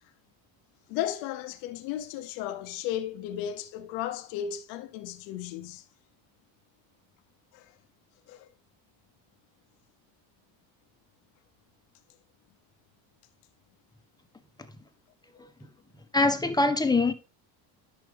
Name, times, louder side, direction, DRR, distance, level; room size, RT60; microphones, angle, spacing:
voice 1, 0.9-5.8 7.5-7.6 8.3-8.5, left 11 dB, 90° left, 1.0 m, -35 dB
voice 2, 16.1-17.1, left 3 dB, 10° left, 1.3 m, -23 dB
10.5 x 6.6 x 3.4 m
cardioid pair, 110°, 43 cm